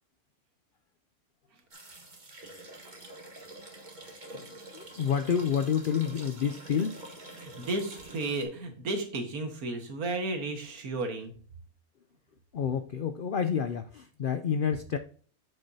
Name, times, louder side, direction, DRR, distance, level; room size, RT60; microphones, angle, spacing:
sound 1, 1.7-8.5, right 2 dB, 30° right, 1.6 m, -47 dB
voice 1, 4.3-7.0 12.5-15.0, left 7 dB, 85° left, 10 dB, 0.4 m, -29 dB
voice 2, 7.4-11.3, right 2 dB, 75° right, 5 dB, 1.9 m, -33 dB
8.3 x 6.7 x 2.7 m, 0.44 s
omnidirectional pair, 1.6 m